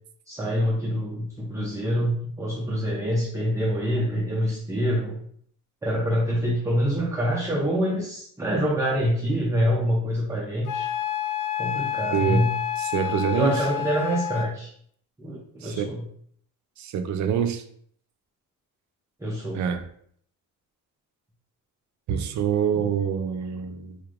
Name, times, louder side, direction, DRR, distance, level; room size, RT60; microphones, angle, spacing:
voice 1, 0.3-5.2 5.8-10.9 11.6-12.5 13.3-14.7 15.2-16.0 19.2-19.6, equal, 10° right, 0.5 m, -26 dB
Wind instrument woodwind instrument, 10.7-14.5, left 11 dB, 65° left, 0.5 m, -29 dB
voice 2, 12.1-12.5 12.8-13.6 15.6-15.9 16.8-17.6 19.5-19.8 22.1-24.0, right 7 dB, 60° right, 0.5 m, -26 dB
4.3 x 3.2 x 2.4 m
cardioid pair, 155°, 33 cm